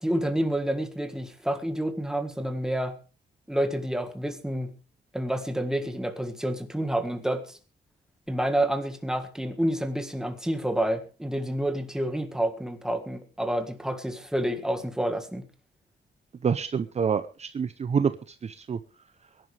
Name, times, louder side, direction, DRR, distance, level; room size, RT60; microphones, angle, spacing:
voice 1, 0.0-3.0 3.5-4.7 5.1-7.6 8.3-15.5, right 1 dB, 5° right, 7 dB, 1.6 m, -29 dB
voice 2, 16.4-18.8, right 6 dB, 35° right, 11 dB, 0.6 m, -27 dB
22.5 x 11.0 x 3.4 m, 0.34 s
cardioid pair, 135°, 19 cm